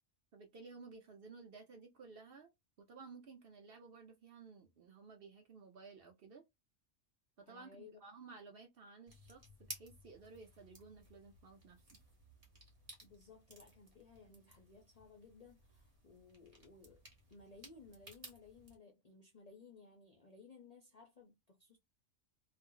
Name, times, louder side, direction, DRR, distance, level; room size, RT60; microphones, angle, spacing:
voice 1, 0.3-2.5 2.8-6.4 7.4-12.0, right 4 dB, 60° right, 0.7 m, -55 dB
voice 2, 7.5-8.0 13.0-17.0 17.3-21.8, left 4 dB, 45° left, 0.5 m, -59 dB
sound 1, 9.1-18.8, right 1 dB, 30° right, 1.0 m, -57 dB
2.5 x 2.0 x 3.7 m
omnidirectional pair, 1.3 m